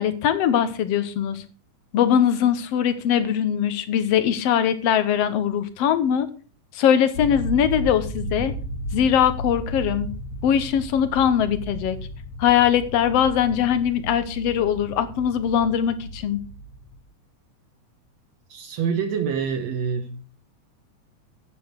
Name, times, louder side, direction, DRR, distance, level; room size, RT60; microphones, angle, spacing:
voice 1, 0.0-1.4 1.9-6.3 6.7-8.5 8.9-10.1 10.4-12.0 12.4-16.4, left 9 dB, 65° left, 1.7 m, -21 dB
sound 1, 7.2-17.0, equal, 80° left, 3.5 m, -34 dB
voice 2, 18.5-20.2, right 6 dB, 65° right, 2.0 m, -26 dB
10.5 x 8.6 x 4.6 m
omnidirectional pair, 3.6 m